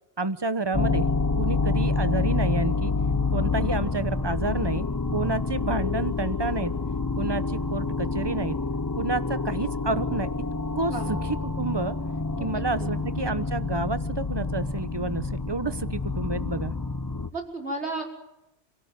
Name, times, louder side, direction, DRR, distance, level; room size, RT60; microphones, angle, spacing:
voice 1, 0.2-1.1 1.4-2.9 3.3-4.9 5.1-6.7 7.1-8.6 8.9-10.3 10.7-11.2 11.4-12.0 12.4-16.8, right 3 dB, 20° right, 13 dB, 1.0 m, -29 dB
sound 1, 0.7-17.3, left 3 dB, 20° left, 0.9 m, -28 dB
voice 2, 12.4-13.0 17.3-18.0, right 2 dB, 65° right, 1 dB, 5.9 m, -34 dB
27.5 x 17.0 x 9.4 m, 0.90 s
omnidirectional pair, 1.2 m